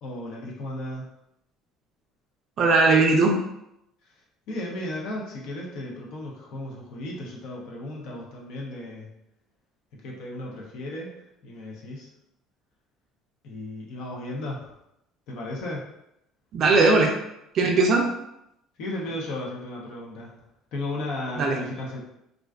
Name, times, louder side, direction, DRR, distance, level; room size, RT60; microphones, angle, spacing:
voice 1, 0.0-1.1 4.5-9.1 10.0-11.1 11.4-12.1 13.4-14.7 15.3-15.8 18.8-20.3 20.7-22.0, left 1 dB, 70° left, -2 dB, 0.6 m, -35 dB
voice 2, 2.6-3.4 16.5-17.1 17.5-18.1 21.4-21.6, right 3 dB, 50° right, 1 dB, 0.4 m, -19 dB
2.4 x 2.3 x 2.3 m, 0.82 s
cardioid pair, 120°, 0 cm